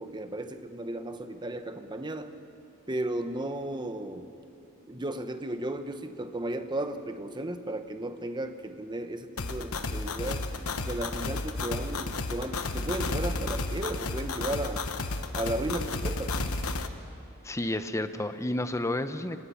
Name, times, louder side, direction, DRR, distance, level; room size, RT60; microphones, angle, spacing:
voice 1, 0.0-2.3 2.9-4.3 4.9-10.5 10.8-14.9 15.3-16.5, right 1 dB, 20° right, 8 dB, 1.0 m, -34 dB
sound 1, 9.4-16.9, left 3 dB, 75° left, 1.1 m, -32 dB
voice 2, 17.4-19.4, left 1 dB, 15° left, 10 dB, 0.7 m, -31 dB
26.0 x 18.5 x 5.8 m, 2.6 s
head